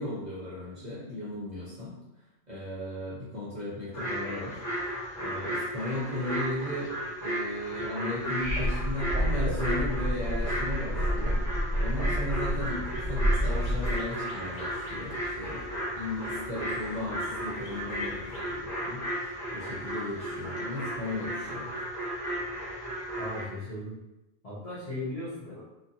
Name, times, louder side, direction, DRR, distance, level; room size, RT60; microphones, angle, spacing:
voice 1, 0.0-1.9 2.5-11.4 11.8-15.7 16.0-21.7, left 1 dB, 40° right, -8 dB, 0.7 m, -36 dB
sound 1, 3.9-23.4, equal, 15° left, 0.8 m, -35 dB
sound 2, 8.4-14.0, equal, 75° right, 0.4 m, -29 dB
sound 3, 12.6-18.6, left 3 dB, 70° left, 0.9 m, -48 dB
voice 2, 23.2-23.9 24.4-25.6, left 1 dB, 40° left, -11 dB, 0.5 m, -37 dB
2.5 x 2.4 x 2.7 m, 0.95 s
omnidirectional pair, 1.4 m